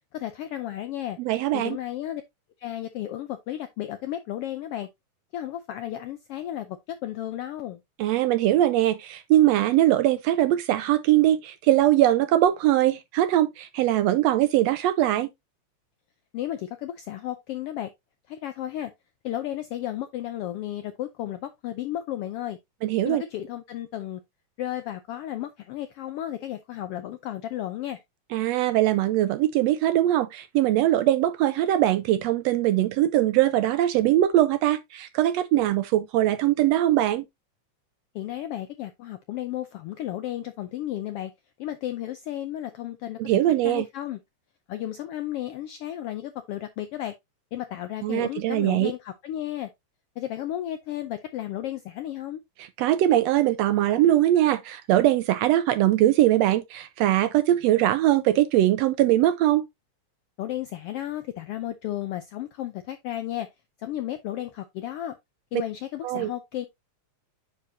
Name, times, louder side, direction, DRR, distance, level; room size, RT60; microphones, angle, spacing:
voice 1, 0.1-1.2 1.5-2.2 2.6-4.9 5.3-7.8 16.3-17.9 18.3-18.9 19.2-22.6 23.0-24.2 24.6-28.0 38.1-41.3 41.6-44.2 44.7-47.1 47.5-49.7 50.2-52.4 60.4-63.5 63.8-65.2 65.5-66.7, left 12 dB, 80° left, 1.3 m, -33 dB
voice 2, 1.2-1.8 8.0-15.3 22.8-23.2 28.3-37.2 43.2-43.9 48.0-48.9 52.8-59.7 66.0-66.3, right 13 dB, 80° right, 1.6 m, -21 dB
9.8 x 4.6 x 2.7 m
omnidirectional pair, 3.3 m